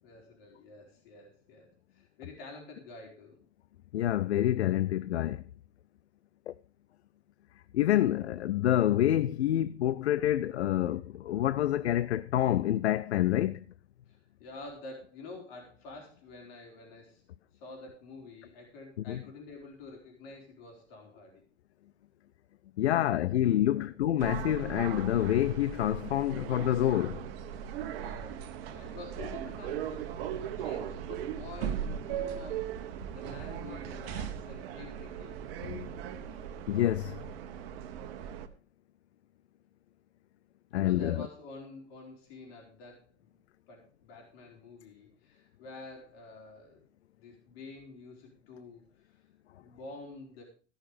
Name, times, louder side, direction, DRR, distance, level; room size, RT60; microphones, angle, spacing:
voice 1, 0.0-3.4 14.1-17.2 17.5-21.4 22.9-23.1 23.7-23.9 27.8-35.4 40.7-43.3 43.7-46.9 47.2-49.2 49.5-50.4, left 3 dB, 60° left, 4.3 m, -48 dB
voice 2, 3.9-5.4 6.5-6.6 7.7-13.6 19.1-19.2 22.8-27.2 35.6-35.9 36.7-37.2 40.7-41.2, left 12 dB, 75° left, 0.6 m, -27 dB
sound 1, 24.2-38.5, right 9 dB, 60° right, 1.4 m, -38 dB
17.0 x 6.5 x 5.0 m
figure-of-eight pair, 85°, 33 cm